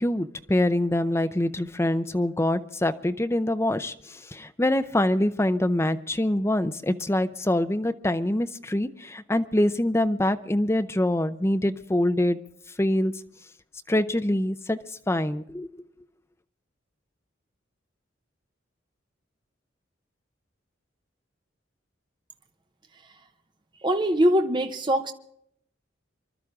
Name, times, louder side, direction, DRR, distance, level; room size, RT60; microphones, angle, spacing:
voice 1, 0.0-12.4 12.8-13.1 13.9-14.8 15.1-15.7, left 1 dB, 15° left, 0.6 m, -25 dB
voice 2, 23.8-25.1, equal, 25° right, 0.9 m, -22 dB
25.0 x 12.5 x 3.6 m
head